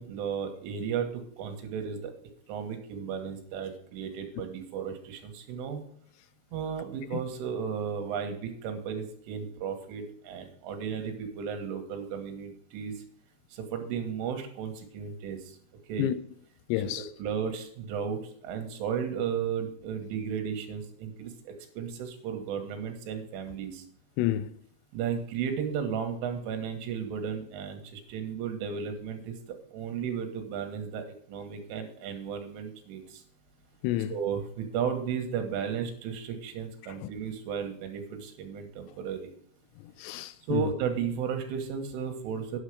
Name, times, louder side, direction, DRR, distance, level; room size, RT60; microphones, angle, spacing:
voice 1, 0.0-2.1 2.5-5.8 6.5-13.0 13.5-15.6 15.9-16.1 17.2-23.8 24.9-33.2 34.1-39.3 40.5-42.6, right 7 dB, 80° right, 3.9 m, -34 dB
voice 2, 16.7-17.1 24.2-24.5 33.8-34.1 39.8-40.7, left 13 dB, 85° left, 3.2 m, -29 dB
9.3 x 8.3 x 4.9 m
omnidirectional pair, 5.8 m